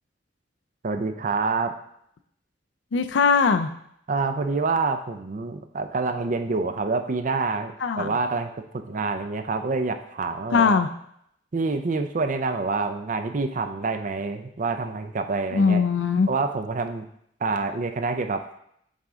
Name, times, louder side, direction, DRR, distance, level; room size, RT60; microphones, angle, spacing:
voice 1, 0.8-1.7 4.1-10.8 11.5-15.8 16.3-17.1 17.4-18.4, right 4 dB, 45° right, 8 dB, 0.5 m, -27 dB
voice 2, 2.9-3.7 7.8-8.2 10.5-10.9 15.5-16.3, left 5 dB, 75° left, 9 dB, 0.4 m, -20 dB
7.5 x 3.9 x 3.6 m, 0.73 s
head